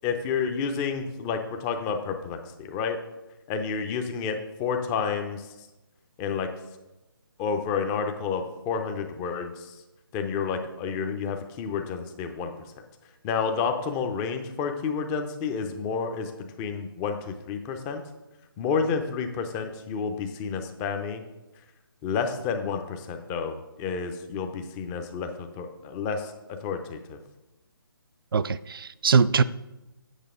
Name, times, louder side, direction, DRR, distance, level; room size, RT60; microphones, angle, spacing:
voice 1, 0.0-3.0 3.5-5.5 6.2-6.5 7.4-9.7 10.1-12.5 13.2-16.3 16.6-18.0 18.6-21.2 22.0-26.3 26.6-27.2, left 6 dB, 15° left, 6 dB, 0.6 m, -30 dB
voice 2, 28.3-29.4, right 5 dB, 65° right, 16 dB, 0.4 m, -22 dB
8.1 x 6.6 x 3.7 m, 1.0 s
figure-of-eight pair, 145°, 12 cm